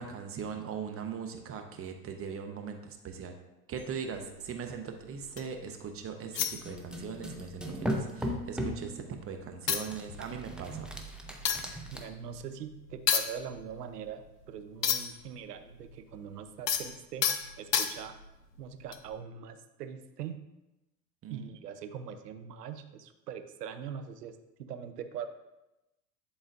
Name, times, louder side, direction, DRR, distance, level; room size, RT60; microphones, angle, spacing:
voice 1, 0.0-3.3 3.7-10.9 21.2-21.6, right 6 dB, 30° right, 5 dB, 0.8 m, -40 dB
sound 1, 3.8-5.6 6.3-7.2 7.5-7.7 8.0-8.9 9.3-9.4 9.7-15.3 15.6-18.3 18.9-19.1, left 8 dB, 90° left, 0.7 m, -33 dB
sound 2, 6.6-8.9 9.9-12.0, equal, ahead, 0.7 m, -37 dB
voice 2, 11.9-17.3 17.6-18.2 18.6-20.4 21.3-25.3, right 8 dB, 80° right, 9 dB, 0.8 m, -42 dB
11.0 x 4.0 x 2.6 m, 0.96 s
hypercardioid pair, 85°, 47 cm